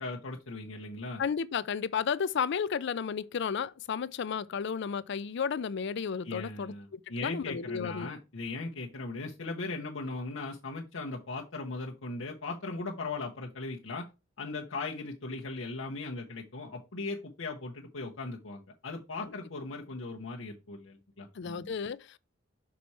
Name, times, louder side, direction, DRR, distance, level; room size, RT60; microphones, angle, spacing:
voice 1, 0.0-1.2 6.2-14.1 14.4-21.7, left 3 dB, 85° left, 1.0 m, -38 dB
voice 2, 1.2-8.1 19.2-19.3 21.4-22.2, left 6 dB, 60° left, 0.4 m, -33 dB
6.0 x 4.2 x 4.6 m
head